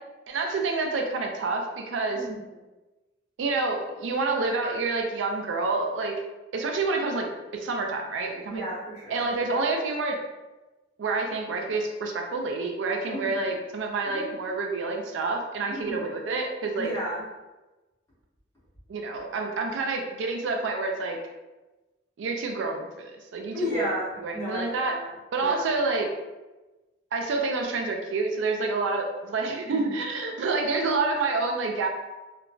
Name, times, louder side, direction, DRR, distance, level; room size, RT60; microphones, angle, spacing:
voice 1, 0.3-2.3 3.4-6.1 6.5-7.3 7.5-8.7 9.1-10.2 11.0-16.9 18.9-21.2 22.2-23.9 24.2-25.0 25.3-26.1 27.1-31.9, right 3 dB, 70° right, 2 dB, 0.4 m, -28 dB
voice 2, 8.5-9.2 13.1-13.4 14.1-14.2 15.7-16.0 16.8-17.2 23.5-25.1 25.4-25.7 29.6-29.9, equal, 15° left, -9 dB, 1.1 m, -33 dB
2.8 x 2.2 x 2.5 m, 1.1 s
head